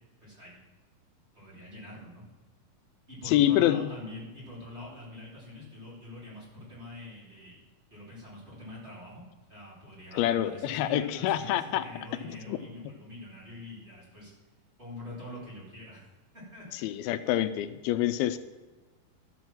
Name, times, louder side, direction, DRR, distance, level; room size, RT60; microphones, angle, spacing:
voice 1, 0.2-0.6 1.3-2.2 3.1-7.6 7.9-9.2 9.5-14.3 14.8-16.1 16.3-16.8, left 1 dB, 15° right, -7 dB, 3.9 m, -44 dB
voice 2, 3.3-3.8 10.1-11.9 12.2-12.6 16.7-18.4, left 12 dB, 85° left, 11 dB, 2.5 m, -26 dB
12.5 x 6.1 x 7.2 m, 1.2 s
omnidirectional pair, 4.3 m